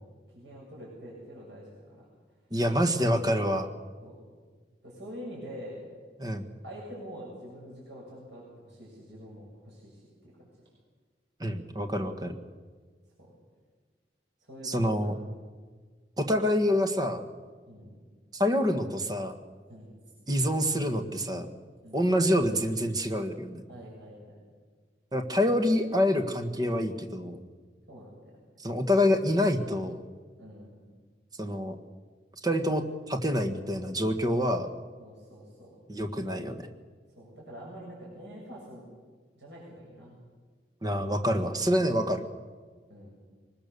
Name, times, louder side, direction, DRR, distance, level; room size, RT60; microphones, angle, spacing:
voice 1, 0.3-2.1 4.0-4.2 4.8-5.8 6.6-10.1 10.4-10.5 13.2-13.3 14.4-15.3 17.7-17.9 19.7-19.9 21.8-22.0 23.7-24.4 27.9-28.1 30.4-30.8 35.0-35.8 37.2-38.8 39.4-40.2 42.9-43.1, equal, 85° right, -4 dB, 7.1 m, -45 dB
voice 2, 2.5-3.7 6.2-6.4 11.4-12.3 14.6-15.1 16.2-17.2 18.3-19.4 20.3-21.5 21.9-23.6 25.1-27.4 28.6-30.0 31.4-31.7 32.4-34.7 35.9-36.7 40.8-42.2, equal, 20° right, 6 dB, 1.6 m, -27 dB
23.5 x 20.5 x 6.9 m, 1.5 s
head